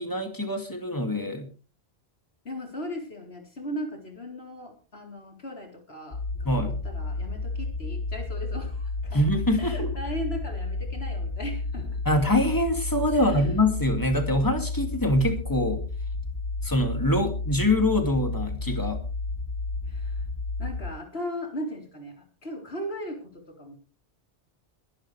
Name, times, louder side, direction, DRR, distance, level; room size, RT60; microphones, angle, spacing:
voice 1, 0.0-1.5 6.4-6.7 9.1-9.9 12.1-15.8 16.6-19.0, left 1 dB, 20° left, 5 dB, 2.5 m, -24 dB
voice 2, 2.4-9.2 9.6-12.0 13.1-13.6 19.8-20.3 20.6-23.7, equal, 70° left, 2 dB, 4.1 m, -37 dB
sound 1, 6.1-20.9, left 3 dB, 45° left, 1.4 m, -32 dB
21.5 x 11.5 x 3.4 m, 0.35 s
omnidirectional pair, 1.1 m